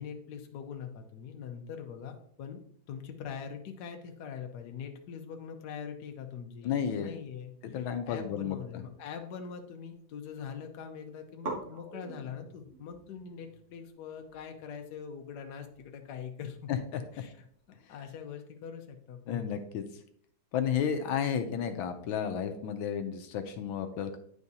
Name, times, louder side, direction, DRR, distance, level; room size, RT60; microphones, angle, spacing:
voice 1, 0.0-2.6 2.9-7.8 8.1-16.7 17.1-17.4 17.9-19.4, left 7 dB, 65° left, 4 dB, 1.3 m, -43 dB
voice 2, 6.6-7.1 7.7-8.8 16.7-16.8 19.3-19.8 20.5-24.2, left 8 dB, 80° left, 7 dB, 1.4 m, -32 dB
sound 1, 7.9-9.7 9.9-10.6 10.9-11.0 11.4-18.2, right 2 dB, 40° right, 1.8 m, -47 dB
9.5 x 4.8 x 2.7 m, 0.64 s
omnidirectional pair, 2.2 m